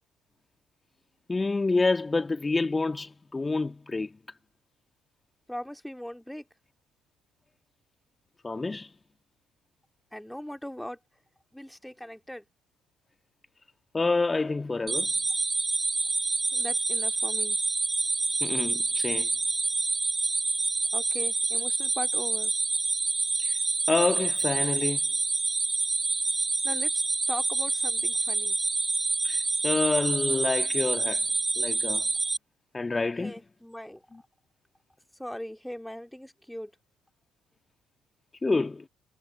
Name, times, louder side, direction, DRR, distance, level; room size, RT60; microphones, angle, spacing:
voice 1, 1.3-4.1 8.4-8.9 13.9-15.1 18.4-19.3 23.4-23.6 23.9-25.1 29.2-31.2 31.6-32.1 32.7-33.4 34.1-34.2 38.4-38.8, left 3 dB, 20° left, 1.6 m, -28 dB
voice 2, 5.5-6.4 10.1-11.0 11.5-12.4 16.5-17.6 20.9-22.5 26.6-28.6 33.2-34.0 35.2-36.7, equal, 5° left, 2.3 m, -39 dB
sound 1, 14.9-32.4, right 3 dB, 20° right, 0.4 m, -27 dB
figure-of-eight pair, 50°, 0 cm